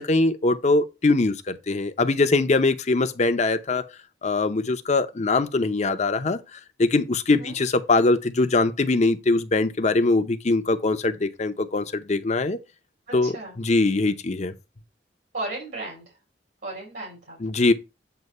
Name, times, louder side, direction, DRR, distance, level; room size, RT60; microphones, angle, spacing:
voice 1, 0.0-3.9 4.2-12.6 13.1-14.5 17.4-17.7, left 3 dB, 40° left, 0.7 m, -22 dB
voice 2, 13.1-13.6 15.3-16.2 16.6-17.6, right 2 dB, 70° right, 2.6 m, -35 dB
7.9 x 2.7 x 5.4 m
head